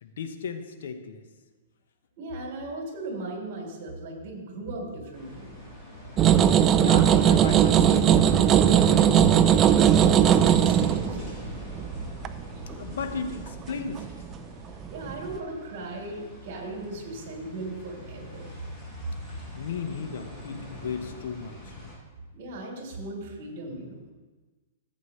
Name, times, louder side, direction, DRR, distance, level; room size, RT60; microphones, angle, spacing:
voice 1, 0.0-1.2 6.7-9.3 12.8-14.1 19.5-21.7, left 5 dB, 70° left, 7 dB, 1.1 m, -35 dB
voice 2, 2.2-5.5 9.7-11.3 14.9-18.5 22.3-24.0, right 2 dB, 45° right, -1 dB, 3.7 m, -37 dB
sound 1, 5.1-22.0, left 1 dB, 10° left, 3.2 m, -43 dB
sound 2, 6.2-14.3 14.8-15.4, right 9 dB, 20° right, 0.4 m, -19 dB
14.5 x 8.3 x 3.2 m, 1.3 s
hypercardioid pair, 155°, 0 cm